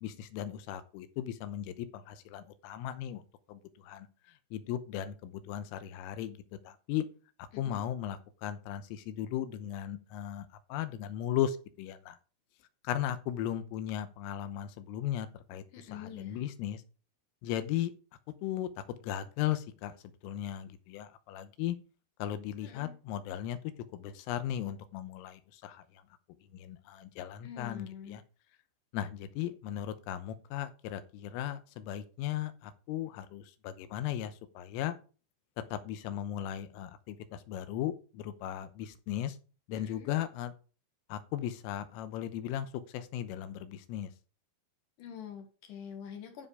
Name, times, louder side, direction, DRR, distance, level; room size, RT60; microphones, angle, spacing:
voice 1, 0.0-3.2 3.5-4.1 4.5-6.4 6.7-7.1 7.6-12.2 12.8-15.6 15.9-16.8 17.4-17.9 18.4-20.0 20.2-21.8 22.2-23.6 23.9-26.0 26.5-28.2 28.9-35.0 35.6-39.4 39.7-40.5 41.1-44.1, left 11 dB, 85° left, 11 dB, 3.4 m, -37 dB
voice 2, 7.5-7.8 15.7-16.4 22.6-22.9 27.4-28.2 39.7-40.1 45.0-46.5, left 8 dB, 65° left, 5 dB, 2.1 m, -45 dB
12.5 x 5.5 x 4.8 m, 0.35 s
omnidirectional pair, 5.9 m